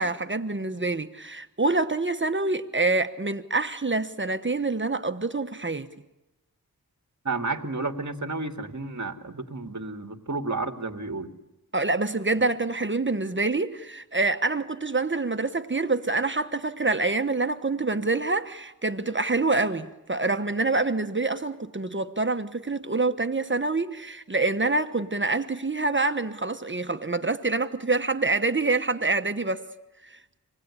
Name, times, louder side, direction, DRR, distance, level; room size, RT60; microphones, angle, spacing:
voice 1, 0.0-5.9 11.7-29.7 30.0-30.2, right 3 dB, 35° right, 1.2 m, -26 dB
voice 2, 7.2-11.3, right 3 dB, 55° right, 2.4 m, -31 dB
26.5 x 19.5 x 9.8 m
wide cardioid pair, 75°, 35 cm